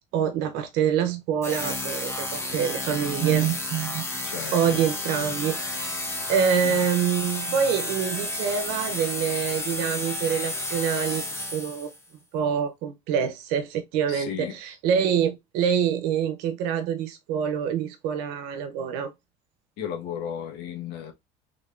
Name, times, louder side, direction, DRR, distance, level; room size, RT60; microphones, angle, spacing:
voice 1, 0.1-4.0 4.5-11.9 12.3-19.1, right 8 dB, 75° right, 0.7 m, -26 dB
sound 1, 1.4-12.0, left 2 dB, 15° left, 0.8 m, -31 dB
voice 2, 4.2-5.4 6.6-6.9 14.1-14.6 19.8-21.1, left 8 dB, 70° left, 1.2 m, -36 dB
3.6 x 3.4 x 2.5 m
cardioid pair, 155°, 17 cm